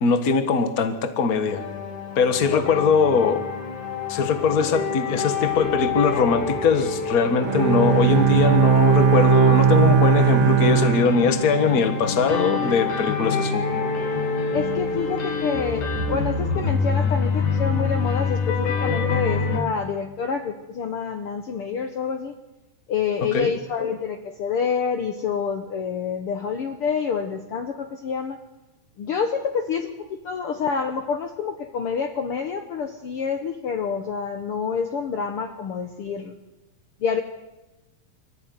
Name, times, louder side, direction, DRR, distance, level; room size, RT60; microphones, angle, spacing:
voice 1, 0.0-1.6 2.1-3.4 4.1-13.7 23.2-23.5, left 5 dB, 35° left, 9 dB, 1.6 m, -21 dB
sound 1, 1.5-19.6, left 4 dB, 75° left, 3.7 m, -27 dB
voice 2, 2.5-2.9 4.5-4.8 14.5-22.3 22.9-28.4 29.0-36.4 37.0-37.2, left 6 dB, 60° left, 6 dB, 1.7 m, -27 dB
Bowed string instrument, 7.4-11.9, right 7 dB, 55° right, 2.8 m, -19 dB
23.5 x 14.0 x 9.5 m, 1.0 s
omnidirectional pair, 3.4 m